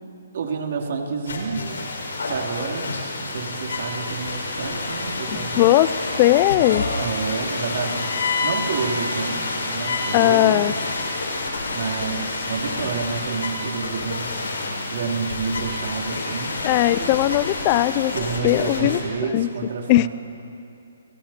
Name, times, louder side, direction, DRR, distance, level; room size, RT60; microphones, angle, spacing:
voice 1, 0.3-1.6 2.3-5.7 7.0-10.8 11.1-11.2 11.7-14.3 14.8-16.6 18.1-20.1, right 5 dB, 55° right, 2 dB, 3.0 m, -29 dB
sound 1, 1.3-19.0, left 3 dB, 85° left, 5.9 m, -28 dB
voice 2, 5.6-5.9 6.2-6.9 10.1-10.7 16.6-18.1 18.4-19.0 19.3-19.5 19.9-20.1, left 16 dB, 30° left, 16 dB, 0.4 m, -18 dB
29.5 x 21.0 x 4.3 m, 2.6 s
hypercardioid pair, 160°, 0 cm